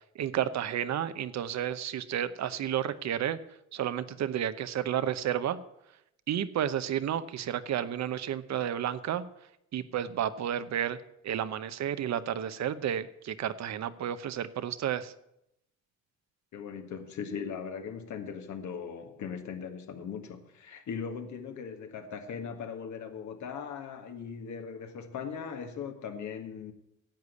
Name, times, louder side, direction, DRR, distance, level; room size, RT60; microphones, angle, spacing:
voice 1, 0.1-3.4 3.7-5.6 6.3-9.2 9.7-11.0 11.2-15.1, right 10 dB, 65° right, 0.8 m, -31 dB
voice 2, 16.5-26.7, left 6 dB, 70° left, 1.7 m, -39 dB
10.5 x 8.2 x 8.2 m
cardioid pair, 90°, 30 cm